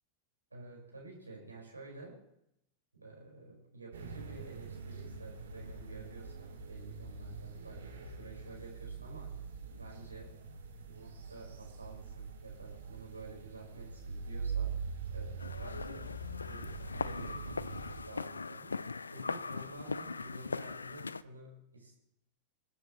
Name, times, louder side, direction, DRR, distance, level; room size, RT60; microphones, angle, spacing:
voice 1, 0.5-2.2 2.9-9.3 9.7-10.3 10.9-14.7 15.1-16.1 16.4-17.4 18.0-21.9, right 3 dB, 80° right, -2 dB, 5.1 m, -51 dB
sound 1, 3.9-18.0, right 5 dB, 65° right, 3.2 m, -43 dB
sound 2, 15.4-21.2, left 4 dB, 75° left, 0.4 m, -40 dB
27.5 x 9.2 x 3.1 m, 0.80 s
figure-of-eight pair, 90°, 0 cm